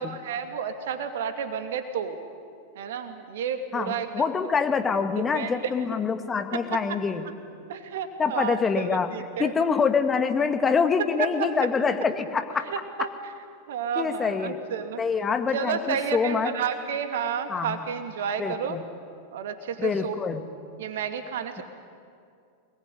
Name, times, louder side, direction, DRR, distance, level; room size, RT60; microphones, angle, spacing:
voice 1, 0.0-2.2 2.7-4.5 5.3-5.7 6.5-7.0 7.7-9.5 11.0-11.5 12.7-13.3 13.7-15.0 15.5-18.8 19.3-20.2 20.8-21.6, right 7 dB, 55° right, 7 dB, 2.4 m, -31 dB
voice 2, 3.7-7.2 8.2-9.1 9.4-12.7 14.0-14.6 15.0-16.5 17.5-17.8 18.4-18.8 19.8-20.5, left 5 dB, 20° left, 7 dB, 1.9 m, -25 dB
26.5 x 20.0 x 9.8 m, 2.3 s
figure-of-eight pair, 90°, 0 cm